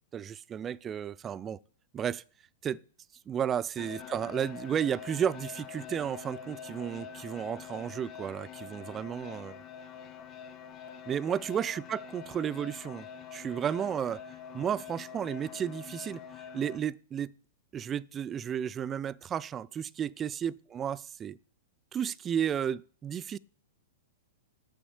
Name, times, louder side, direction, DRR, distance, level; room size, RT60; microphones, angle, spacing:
voice 1, 0.1-1.6 1.9-2.2 2.6-2.8 3.3-9.6 11.1-14.2 14.5-16.2 16.5-17.3 17.7-21.4 21.9-23.4, right 8 dB, 25° right, 0.4 m, -33 dB
sound 1, 3.8-16.8, left 7 dB, 35° left, 2.0 m, -45 dB
7.2 x 7.1 x 7.1 m
hypercardioid pair, 110°, 0 cm